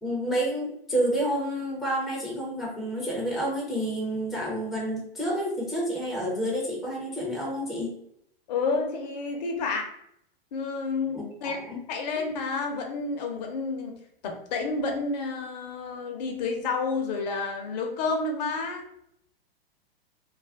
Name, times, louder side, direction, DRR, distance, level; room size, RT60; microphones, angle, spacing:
voice 1, 0.0-8.0 11.1-11.8, right 1 dB, ahead, -5 dB, 0.4 m, -29 dB
voice 2, 8.5-9.8 10.5-11.6 11.9-13.9 14.2-18.9, left 4 dB, 45° left, 3 dB, 0.6 m, -30 dB
2.4 x 2.1 x 3.3 m, 0.72 s
figure-of-eight pair, 100°, 30 cm